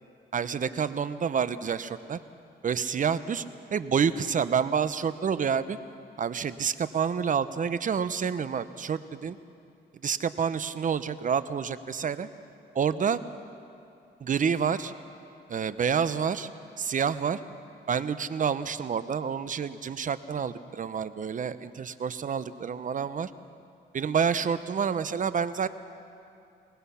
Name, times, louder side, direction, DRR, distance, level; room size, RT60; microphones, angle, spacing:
voice 1, 0.3-2.2 2.6-3.4 3.7-5.8 6.2-9.4 10.0-12.3 12.7-13.2 14.2-14.9 15.5-16.5 16.8-17.4 17.9-23.3 23.9-25.7, right 7 dB, 40° right, 14 dB, 0.8 m, -28 dB
23.0 x 19.5 x 5.7 m, 2.6 s
cardioid pair, 90°, 20 cm